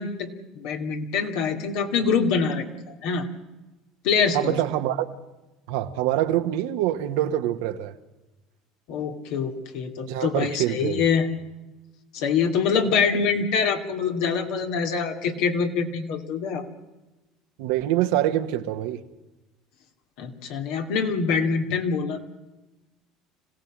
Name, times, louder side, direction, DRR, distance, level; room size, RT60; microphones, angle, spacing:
voice 1, 0.0-3.3 4.0-4.6 8.9-11.2 12.1-16.6 20.2-22.2, left 5 dB, 70° left, 2.6 m, -25 dB
voice 2, 4.3-5.1 5.7-7.9 10.1-11.0 17.6-19.0, right 13 dB, 75° right, 1.5 m, -25 dB
26.0 x 16.5 x 7.5 m
supercardioid pair, 90°, 0 cm